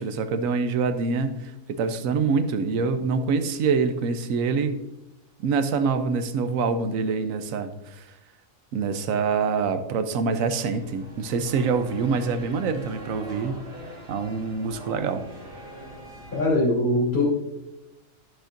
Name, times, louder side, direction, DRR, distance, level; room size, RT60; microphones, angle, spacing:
voice 1, 0.0-4.8 5.4-8.0 8.7-13.6 14.1-15.2, right 5 dB, 90° right, 9 dB, 1.1 m, -25 dB
sound 1, 10.6-16.5, right 1 dB, 45° right, 2.0 m, -43 dB
voice 2, 16.3-17.2, left 1 dB, 45° left, -7 dB, 3.3 m, -22 dB
11.5 x 7.2 x 2.6 m, 0.96 s
omnidirectional pair, 1.4 m